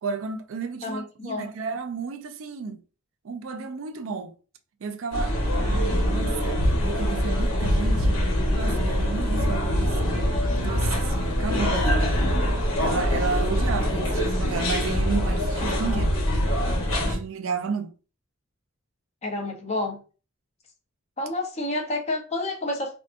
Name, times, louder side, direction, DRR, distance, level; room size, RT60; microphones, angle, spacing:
voice 1, 0.0-2.8 3.2-4.3 4.8-8.2 8.5-10.2 10.5-12.2 12.8-16.2 17.0-17.9, right 5 dB, 70° right, 0.4 m, -32 dB
voice 2, 0.8-1.5 19.2-20.0 21.2-22.9, left 2 dB, 30° left, 0.6 m, -29 dB
sound 1, 5.1-17.1, equal, 75° left, 1.1 m, -24 dB
3.3 x 2.7 x 2.5 m
head